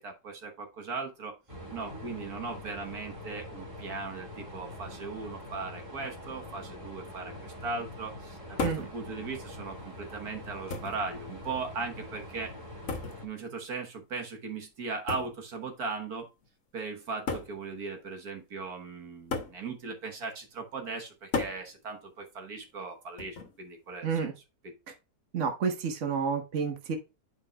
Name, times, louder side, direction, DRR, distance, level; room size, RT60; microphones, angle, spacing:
voice 1, 0.0-1.3 1.7-12.6 13.2-16.3 16.7-24.3 24.6-24.7, right 4 dB, 70° right, 3 dB, 1.8 m, -38 dB
sound 1, 1.5-13.3, left 1 dB, 20° right, 2.2 m, -44 dB
sound 2, 8.6-9.0 10.0-10.1 10.7-11.1 12.9-13.2 15.1-15.4 16.4-16.5 17.3-17.6 19.3-19.6 21.3-21.6 23.2-23.6, left 4 dB, 55° left, 1.5 m, -34 dB
voice 2, 25.3-27.0, right 6 dB, 50° right, 5 dB, 1.5 m, -30 dB
10.5 x 5.2 x 2.3 m, 0.28 s
omnidirectional pair, 1.7 m